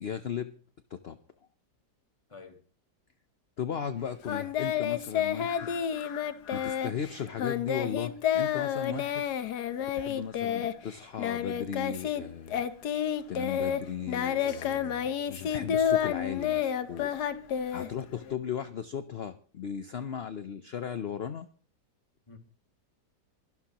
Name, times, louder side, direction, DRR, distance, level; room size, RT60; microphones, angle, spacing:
voice 1, 0.0-0.5 0.9-1.2 3.6-6.1 6.5-9.2 9.9-12.6 13.3-17.4 17.7-21.5, left 8 dB, 55° left, 0.7 m, -36 dB
voice 2, 2.3-2.7 4.1-4.2 8.9-9.0 10.4-10.6 17.8-18.0 22.3-22.4, left 4 dB, 20° left, 1.7 m, -51 dB
Singing, 4.3-12.2 12.5-18.3, left 9 dB, 70° left, 1.5 m, -30 dB
23.0 x 12.0 x 3.0 m
omnidirectional pair, 1.8 m